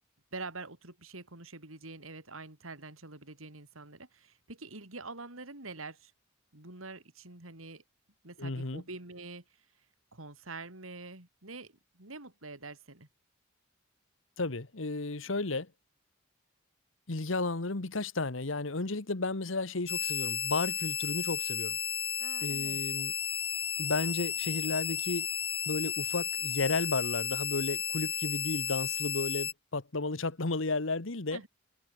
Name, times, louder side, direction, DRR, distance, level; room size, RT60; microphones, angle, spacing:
voice 1, 0.3-6.1 6.5-7.8 8.2-9.4 10.1-13.1 22.2-22.8 31.3-31.5, right 3 dB, 85° right, 4.3 m, -45 dB
voice 2, 8.4-8.8 14.4-15.7 17.1-21.8 22.4-23.1 23.8-25.3 25.7-31.4, left 3 dB, 70° left, 1.4 m, -33 dB
sound 1, 19.9-29.5, left 7 dB, 25° left, 2.4 m, -33 dB
head